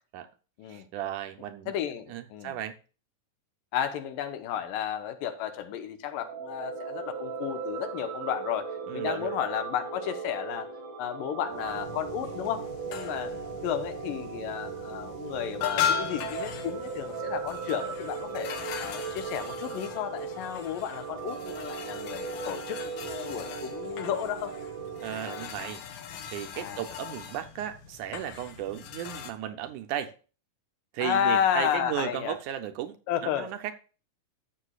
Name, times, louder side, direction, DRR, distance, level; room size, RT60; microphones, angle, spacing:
voice 1, 0.7-1.7 2.1-2.8 8.9-9.3 25.0-30.1 30.9-33.0 33.2-33.7, right 11 dB, 75° right, 2.0 m, -35 dB
voice 2, 1.7-2.5 3.7-10.7 11.0-13.3 13.6-18.5 18.8-24.6 26.5-26.8 31.0-32.4 33.1-33.5, left 9 dB, 90° left, 2.6 m, -32 dB
sound 1, 6.1-25.4, right 6 dB, 50° right, 1.5 m, -38 dB
sound 2, 11.5-29.3, left 8 dB, 70° left, 2.2 m, -38 dB
13.0 x 7.0 x 2.3 m
omnidirectional pair, 3.8 m